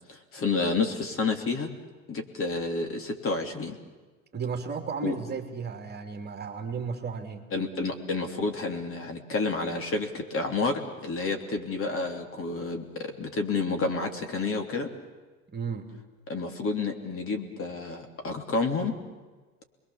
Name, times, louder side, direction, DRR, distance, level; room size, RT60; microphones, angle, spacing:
voice 1, 0.1-1.7 2.1-3.8 5.0-5.1 7.5-14.9 16.3-18.9, left 3 dB, 30° left, 5 dB, 3.1 m, -30 dB
voice 2, 4.3-7.4 15.5-15.9, right 5 dB, 25° right, 4 dB, 3.1 m, -34 dB
29.5 x 22.0 x 7.3 m, 1.3 s
hypercardioid pair, 85°, 42 cm